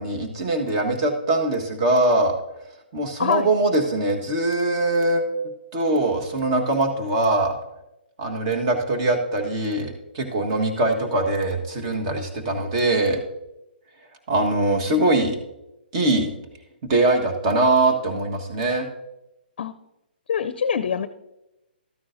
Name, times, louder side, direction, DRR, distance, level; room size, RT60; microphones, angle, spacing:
voice 1, 0.0-2.4 2.9-5.2 5.7-7.6 8.2-13.2 14.3-15.4 15.9-16.3 16.8-18.9, right 2 dB, 35° right, 4 dB, 1.4 m, -22 dB
voice 2, 3.2-3.5 19.6-19.7 20.3-21.1, left 7 dB, 60° left, 12 dB, 0.5 m, -24 dB
13.0 x 9.4 x 2.6 m, 0.92 s
hypercardioid pair, 150°, 6 cm